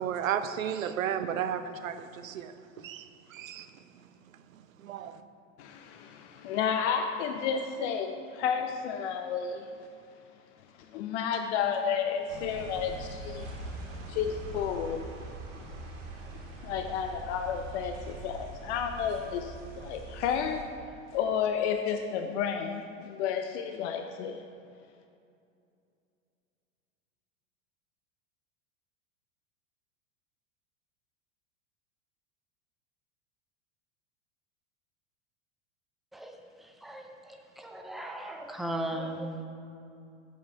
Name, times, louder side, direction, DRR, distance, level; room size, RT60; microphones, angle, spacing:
voice 1, 0.0-3.7 4.8-5.2, right 9 dB, 85° right, 11 dB, 0.6 m, -33 dB
voice 2, 5.6-9.7 10.9-13.5 14.1-15.1 16.6-20.6 21.1-24.4, left 7 dB, 60° left, 5 dB, 0.6 m, -31 dB
sound 1, 12.3-20.6, right 2 dB, 60° right, 1.6 m, -42 dB
voice 3, 36.1-39.3, right 1 dB, ahead, 3 dB, 0.3 m, -38 dB
7.2 x 5.6 x 4.7 m, 2.5 s
hypercardioid pair, 100°, 39 cm